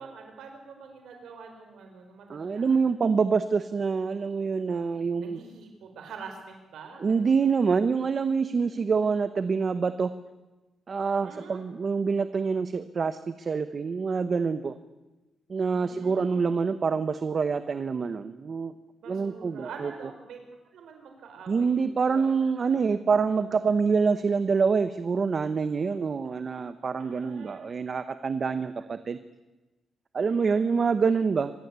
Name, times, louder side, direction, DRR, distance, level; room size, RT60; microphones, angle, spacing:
voice 1, 0.0-2.9 5.2-7.5 11.2-11.7 15.6-16.5 19.0-20.4 20.7-22.3 27.0-27.7 30.2-30.9, right 5 dB, 85° right, 4 dB, 4.6 m, -46 dB
voice 2, 2.3-5.4 7.0-10.1 10.9-14.7 15.5-18.7 19.1-19.9 21.5-29.2 30.1-31.5, right 5 dB, 35° right, 12 dB, 0.9 m, -26 dB
25.5 x 19.5 x 8.2 m, 1.1 s
wide cardioid pair, 160°, 0 cm